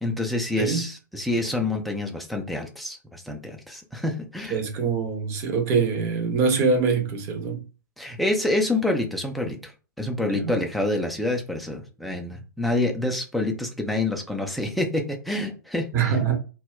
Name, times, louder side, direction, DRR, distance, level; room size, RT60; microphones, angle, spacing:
voice 1, 0.0-4.6 8.0-9.7 10.0-16.2, left 2 dB, ahead, 0.4 m, -27 dB
voice 2, 4.5-7.6 10.3-10.5 15.9-16.3, right 5 dB, 25° right, 0.7 m, -24 dB
2.1 x 2.1 x 3.6 m
figure-of-eight pair, 115°, 11 cm